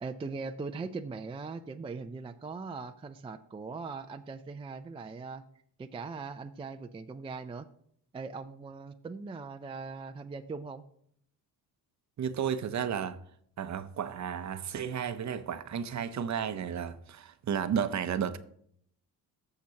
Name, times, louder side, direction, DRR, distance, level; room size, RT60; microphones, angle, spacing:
voice 1, 0.0-5.4 5.8-7.7 8.1-10.8, right 4 dB, 15° right, 0.3 m, -40 dB
voice 2, 12.2-13.2 13.6-18.4, right 8 dB, 45° right, 0.7 m, -33 dB
14.5 x 5.8 x 2.8 m
cardioid pair, 110°, 40 cm